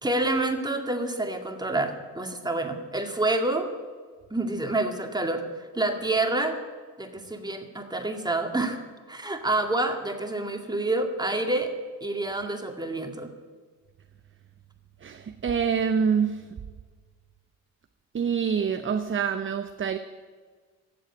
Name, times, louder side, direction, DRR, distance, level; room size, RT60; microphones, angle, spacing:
voice 1, 0.0-3.7 4.3-5.4 5.7-6.6 7.0-8.8 9.1-11.7 12.0-13.3, right 2 dB, 10° right, 2.1 m, -28 dB
voice 2, 15.0-16.5 18.1-20.0, right 6 dB, 25° right, 0.8 m, -26 dB
15.5 x 7.7 x 8.8 m
hypercardioid pair, 50°, 46 cm